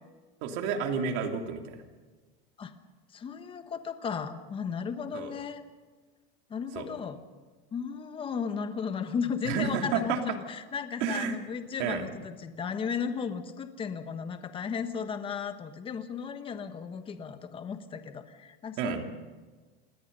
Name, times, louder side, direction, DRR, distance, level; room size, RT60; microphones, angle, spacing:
voice 1, 0.4-1.8 5.1-5.3 6.7-6.9 9.4-10.2 11.0-11.4 11.8-12.1 18.8-19.0, right 6 dB, 55° right, 4 dB, 3.0 m, -30 dB
voice 2, 3.1-5.6 6.5-7.2 7.7-19.1, left 6 dB, 20° left, 9 dB, 1.3 m, -35 dB
28.5 x 20.5 x 5.5 m, 1.4 s
supercardioid pair, 160°, 29 cm